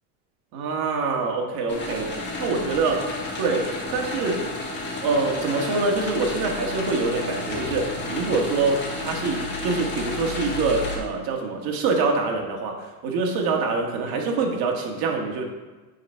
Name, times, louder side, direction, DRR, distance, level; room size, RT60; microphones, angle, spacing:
voice 1, 0.5-3.1 3.4-4.5 5.0-15.4, right 4 dB, 50° right, 1 dB, 1.7 m, -25 dB
sound 1, 1.7-11.0, left 2 dB, 25° left, 1.7 m, -31 dB
9.5 x 4.0 x 4.5 m, 1.3 s
supercardioid pair, 120°, 45 cm